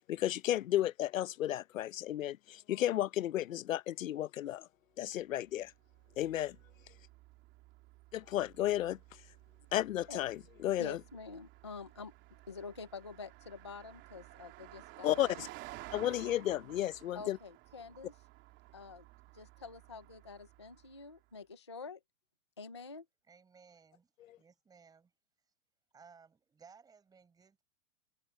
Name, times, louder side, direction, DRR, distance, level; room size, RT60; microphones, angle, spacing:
voice 1, 0.1-4.7 5.0-5.7 6.2-6.6 8.1-9.0 9.7-11.0 15.0-15.5 15.9-17.4 24.3-24.4, left 13 dB, 60° left, 0.8 m, -33 dB
Car passing by, 5.4-21.2, right 20 dB, 25° right, 3.1 m, -55 dB
voice 2, 10.8-12.1 12.5-15.5 17.1-18.1 18.7-19.0 19.3-22.0 22.6-23.1, left 4 dB, 20° left, 0.3 m, -47 dB
voice 3, 23.3-24.1 24.4-25.1 25.9-27.6, right 5 dB, 10° right, 5.3 m, -60 dB
hypercardioid pair, 160°, 44 cm